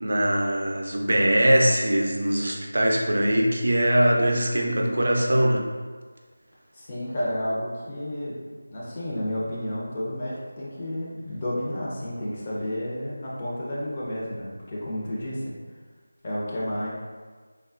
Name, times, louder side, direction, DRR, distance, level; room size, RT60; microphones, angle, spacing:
voice 1, 0.0-5.7, right 1 dB, 60° right, 0 dB, 0.4 m, -22 dB
voice 2, 6.7-8.4 8.7-15.5 16.2-16.9, left 1 dB, 25° left, -6 dB, 0.5 m, -31 dB
3.3 x 2.1 x 2.4 m, 1.5 s
figure-of-eight pair, 165°, 0 cm